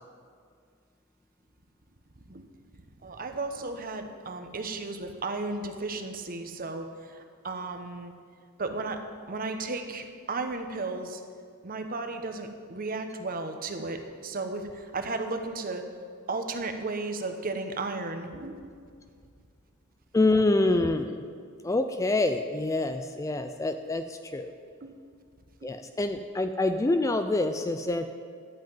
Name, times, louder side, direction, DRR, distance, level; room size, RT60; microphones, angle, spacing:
voice 1, 3.0-8.1 8.6-9.0 9.3-11.2 11.6-15.8 16.3-18.8 24.8-24.9 25.6-25.7, right 3 dB, 40° right, 6 dB, 0.9 m, -34 dB
voice 2, 20.1-21.2 21.6-24.5 25.6-28.1, left 2 dB, 15° left, 8 dB, 0.4 m, -26 dB
12.0 x 5.8 x 8.8 m, 2.1 s
head